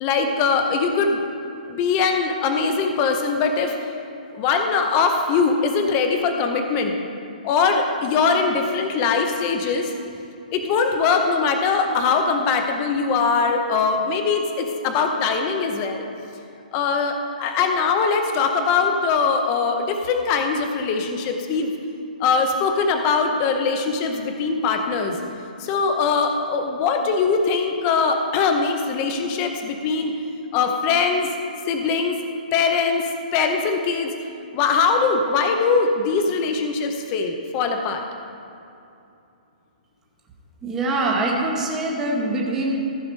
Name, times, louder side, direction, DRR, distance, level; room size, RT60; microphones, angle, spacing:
voice 1, 0.0-1.2 1.7-3.8 4.4-6.9 7.4-9.9 10.5-16.1 16.7-21.7 22.2-25.2 25.6-30.1 30.5-31.3 31.7-32.2 32.5-34.1 34.5-38.0, left 5 dB, 20° left, 4 dB, 0.6 m, -21 dB
voice 2, 40.6-42.8, right 2 dB, 10° right, -2 dB, 0.8 m, -23 dB
14.0 x 4.8 x 5.3 m, 2.7 s
hypercardioid pair, 175°, 5 cm